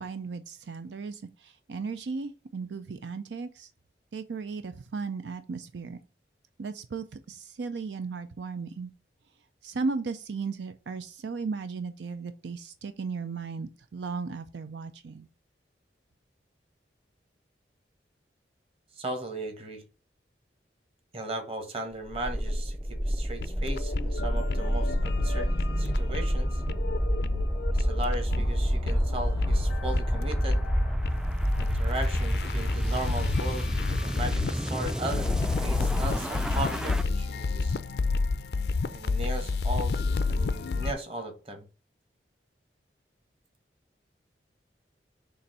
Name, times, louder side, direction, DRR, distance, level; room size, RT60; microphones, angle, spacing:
voice 1, 0.0-3.7 4.1-6.0 6.6-8.9 9.6-15.3, right 4 dB, 80° right, 0.5 m, -36 dB
voice 2, 18.9-19.8 21.1-25.5 25.8-26.6 27.7-30.6 31.6-37.7 38.9-41.6, right 1 dB, 35° right, 1.3 m, -37 dB
sound 1, 22.1-37.0, equal, 5° right, 0.3 m, -28 dB
sound 2, 23.4-40.9, left 4 dB, 65° left, 0.4 m, -31 dB
7.0 x 2.6 x 5.4 m
head